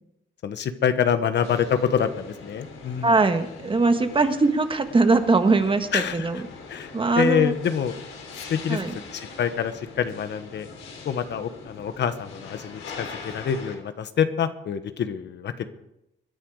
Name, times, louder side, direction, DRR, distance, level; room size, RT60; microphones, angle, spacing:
voice 1, 0.4-3.1 5.9-6.4 6.7-7.9 8.5-8.8 9.1-10.7 11.0-15.7, left 8 dB, 60° left, 10 dB, 1.3 m, -26 dB
sound 1, 1.4-13.8, left 4 dB, 85° left, 3.9 m, -42 dB
voice 2, 3.0-6.4 6.9-7.5 8.7-8.9, right 3 dB, 25° right, 8 dB, 1.6 m, -21 dB
22.5 x 10.5 x 4.9 m, 0.84 s
cardioid pair, 90°, 20 cm